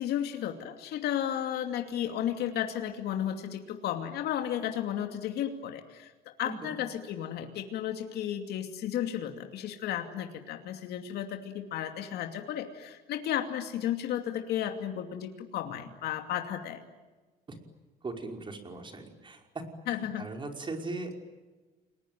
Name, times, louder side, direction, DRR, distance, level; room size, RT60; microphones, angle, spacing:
voice 1, 0.0-16.8 19.9-20.3, left 10 dB, 75° left, 5 dB, 2.6 m, -33 dB
voice 2, 6.4-6.8 17.5-17.6 18.0-21.1, right 2 dB, 30° right, 4 dB, 5.3 m, -39 dB
30.0 x 21.0 x 9.2 m, 1.2 s
cardioid pair, 110°, 17 cm